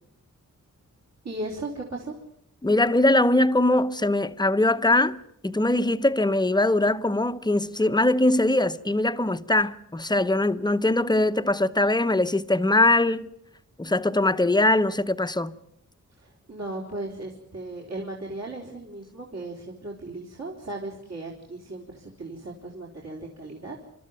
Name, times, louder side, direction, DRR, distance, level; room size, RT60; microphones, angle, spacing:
voice 1, 1.2-2.1 16.1-23.8, right 2 dB, 55° right, 3.8 m, -36 dB
voice 2, 2.6-5.2 5.4-13.3 13.8-15.5, left 2 dB, 15° left, 0.8 m, -22 dB
29.5 x 13.5 x 9.1 m
wide cardioid pair, 145°, 31 cm